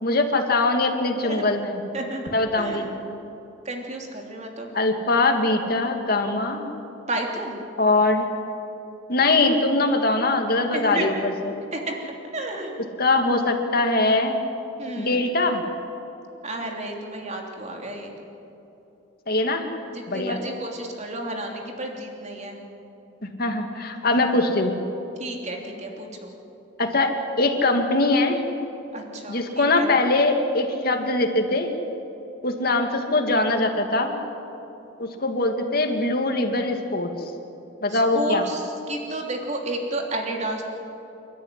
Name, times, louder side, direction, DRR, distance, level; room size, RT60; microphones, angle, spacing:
voice 1, 0.0-1.8 2.3-2.9 4.7-6.7 7.8-8.2 9.1-11.5 13.0-14.4 15.0-15.6 19.3-19.7 20.1-20.4 23.2-24.7 26.8-27.1 27.4-28.4 29.3-31.7 32.4-34.2 35.0-37.1 37.8-38.4, left 2 dB, 55° left, 4 dB, 2.4 m, -22 dB
voice 2, 1.9-2.9 3.6-4.7 7.1-7.6 10.7-11.1 11.7-12.9 14.8-15.2 16.4-18.2 19.9-22.6 23.9-24.3 25.2-26.3 28.9-29.9 37.9-40.6, right 1 dB, 40° right, 1 dB, 3.2 m, -32 dB
29.0 x 13.0 x 9.8 m, 3.0 s
head